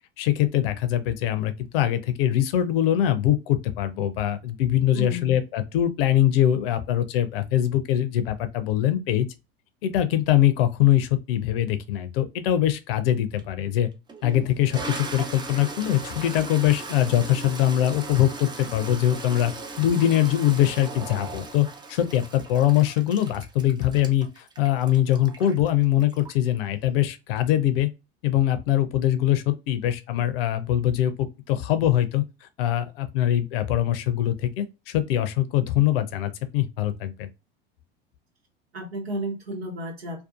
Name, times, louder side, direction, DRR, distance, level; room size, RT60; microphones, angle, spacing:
voice 1, 0.2-9.3 9.8-13.9 14.2-19.5 19.8-27.9 28.2-37.3, left 12 dB, 65° left, 0.6 m, -23 dB
voice 2, 4.9-5.4 20.0-20.1 38.7-40.2, equal, 85° right, 1.2 m, -32 dB
Toilet flush, 13.4-13.5 14.1-26.6, right 3 dB, 15° right, 0.4 m, -38 dB
2.6 x 2.3 x 2.3 m
hypercardioid pair, 80°, 30 cm